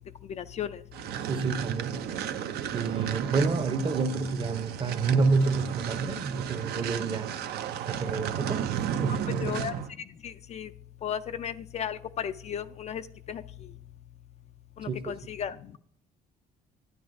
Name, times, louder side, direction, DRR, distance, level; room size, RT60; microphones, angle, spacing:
voice 1, 0.3-0.8 9.4-9.7 10.2-10.7 11.0-13.0 13.3-13.4 14.8-15.8, left 9 dB, 40° left, 0.4 m, -35 dB
sound 1, 0.9-9.9, right 9 dB, 70° right, 0.6 m, -33 dB
voice 2, 1.3-2.0 2.7-7.3 7.9-8.7 9.0-9.6 14.9-15.1, right 4 dB, 30° right, 0.7 m, -28 dB
10.5 x 9.3 x 2.6 m
cardioid pair, 110°, 17 cm